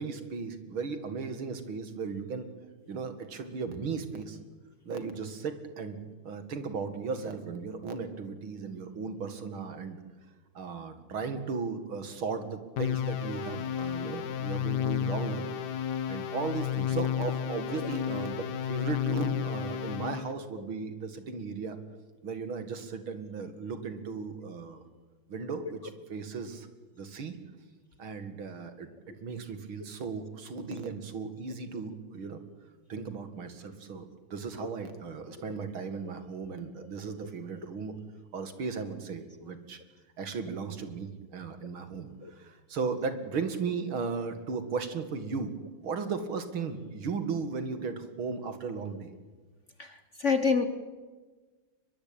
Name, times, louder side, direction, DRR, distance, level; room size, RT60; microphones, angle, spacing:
voice 1, 0.0-2.5 2.9-4.4 4.9-6.0 6.2-10.0 10.5-15.5 16.1-21.8 22.2-24.8 25.3-25.8 26.1-26.7 27.0-27.4 28.0-28.9 29.2-32.4 32.9-38.0 38.3-39.8 40.2-45.6 45.8-49.1, right 5 dB, 70° right, 9 dB, 2.8 m, -36 dB
sound 1, 12.8-20.3, left 10 dB, 60° left, 1.4 m, -32 dB
voice 2, 49.8-50.7, left 5 dB, 40° left, 9 dB, 1.3 m, -27 dB
23.0 x 21.5 x 8.9 m, 1.3 s
omnidirectional pair, 2.4 m